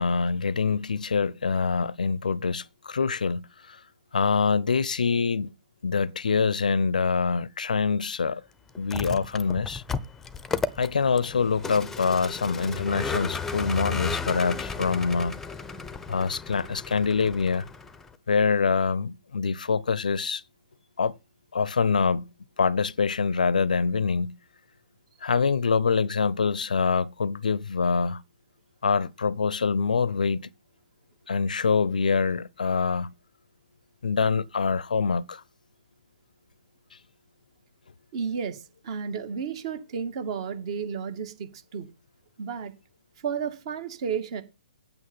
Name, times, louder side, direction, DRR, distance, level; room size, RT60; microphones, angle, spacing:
voice 1, 0.0-3.8 4.1-5.5 5.8-8.4 8.8-9.8 10.8-15.4 16.1-17.7 18.3-20.4 21.0-21.2 21.5-22.3 22.6-24.4 25.2-28.2 28.8-30.5 31.3-33.1 34.0-35.4, left 5 dB, 70° left, 0.6 m, -25 dB
Vehicle, 8.8-18.1, left 5 dB, 5° left, 0.8 m, -34 dB
voice 2, 38.1-41.9 42.4-42.7 43.2-44.4, right 6 dB, 45° right, 2.3 m, -32 dB
9.1 x 8.9 x 5.6 m
figure-of-eight pair, 125°, 4 cm